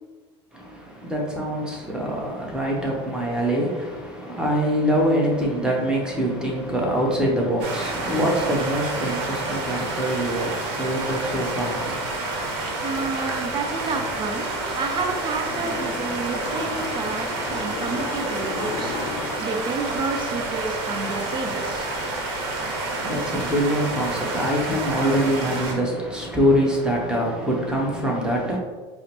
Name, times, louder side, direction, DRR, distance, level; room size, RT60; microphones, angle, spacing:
voice 1, 0.5-12.5 22.9-28.6, equal, 5° right, 1.0 m, -24 dB
sound 1, 7.6-25.7, right 2 dB, 70° right, 0.8 m, -29 dB
voice 2, 12.8-21.9, right 4 dB, 35° right, 0.6 m, -30 dB
sound 2, 15.4-20.8, left 5 dB, 45° left, 0.5 m, -36 dB
4.8 x 2.0 x 3.0 m
hypercardioid pair, 90°, 14 cm